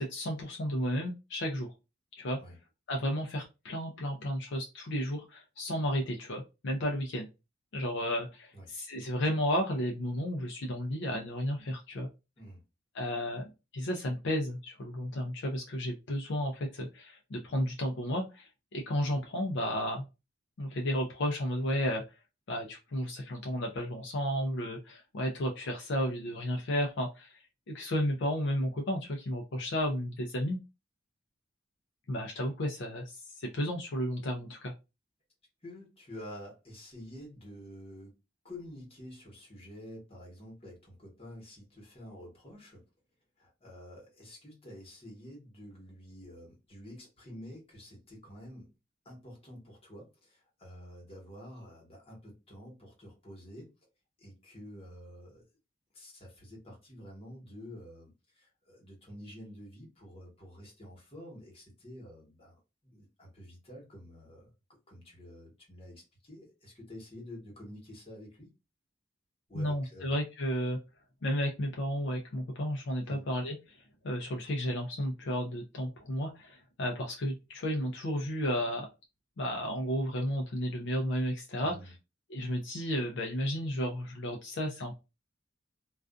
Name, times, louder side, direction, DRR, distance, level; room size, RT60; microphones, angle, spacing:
voice 1, 0.0-1.7 2.1-2.4 2.9-7.3 7.7-12.1 12.9-13.5 13.7-20.0 20.6-22.0 22.5-30.6 32.1-34.7 69.5-70.8 71.2-78.9 79.4-81.7 82.3-84.9, equal, 60° left, 0.5 m, -33 dB
voice 2, 35.6-38.2 38.4-42.8 43.4-48.7 49.0-53.7 54.2-55.5 55.9-64.5 64.9-68.5 69.5-70.2 73.0-73.2 81.6-81.9, equal, 30° left, 1.2 m, -49 dB
2.4 x 2.3 x 2.3 m
head